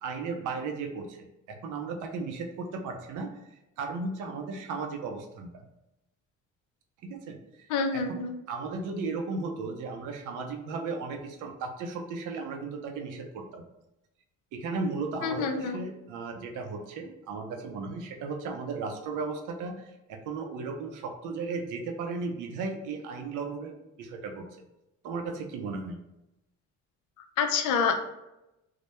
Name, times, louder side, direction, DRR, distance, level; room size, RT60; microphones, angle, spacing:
voice 1, 0.0-3.3 3.8-5.5 7.0-8.0 8.5-13.6 14.5-24.5 25.0-26.0, right 4 dB, 85° right, 4 dB, 0.5 m, -35 dB
voice 2, 7.7-8.3 15.2-15.8 27.4-28.1, left 5 dB, 85° left, 5 dB, 0.5 m, -27 dB
2.1 x 2.0 x 2.9 m, 0.90 s
cardioid pair, 90°, 30 cm